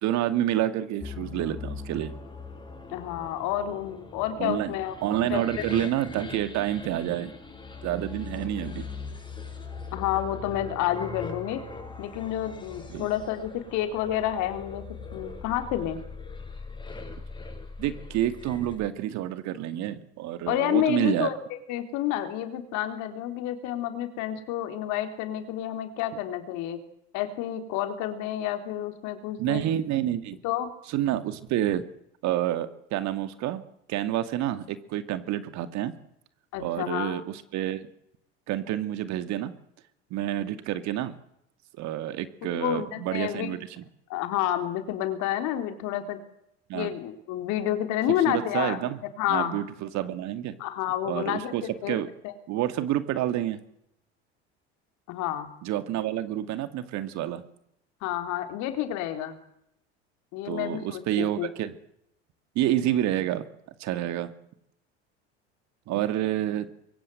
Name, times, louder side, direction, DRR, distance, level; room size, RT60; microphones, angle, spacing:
voice 1, 0.0-2.1 4.4-4.7 5.0-7.3 7.8-8.8 12.9-13.1 17.8-21.3 29.4-30.4 30.9-31.8 32.2-33.6 33.9-35.9 36.6-37.9 38.5-39.5 40.1-41.2 41.8-43.8 46.7-46.9 48.3-49.0 49.3-50.6 51.1-52.1 52.5-53.6 55.6-57.4 60.4-61.7 62.5-63.5 63.8-64.3 65.9-66.7, right 12 dB, 60° right, 10 dB, 2.5 m, -28 dB
sound 1, 1.0-18.8, left 4 dB, 15° left, 7.7 m, -41 dB
voice 2, 2.9-4.9 5.2-5.4 9.9-11.6 12.0-14.8 15.1-16.0 20.5-21.4 21.7-26.8 27.1-29.6 30.4-30.7 36.5-37.2 42.4-43.6 44.1-46.2 46.7-48.8 49.2-49.6 50.6-51.5 51.8-52.0 52.2-52.3 55.1-55.5 58.0-59.4 60.3-61.5, left 11 dB, 65° left, 7 dB, 4.0 m, -29 dB
25.0 x 22.5 x 8.0 m, 0.78 s
hypercardioid pair, 80°, 32 cm